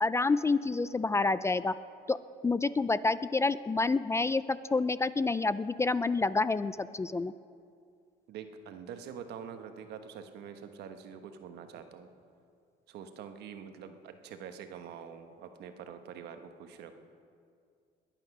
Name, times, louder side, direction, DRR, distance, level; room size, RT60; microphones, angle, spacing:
voice 1, 0.0-1.7 2.1-2.2 2.4-7.3, left 3 dB, 15° left, 15 dB, 0.3 m, -28 dB
voice 2, 8.3-12.1 12.9-16.9, right 7 dB, 75° right, 7 dB, 1.2 m, -45 dB
21.0 x 8.9 x 6.0 m, 2.3 s
cardioid pair, 110°, 17 cm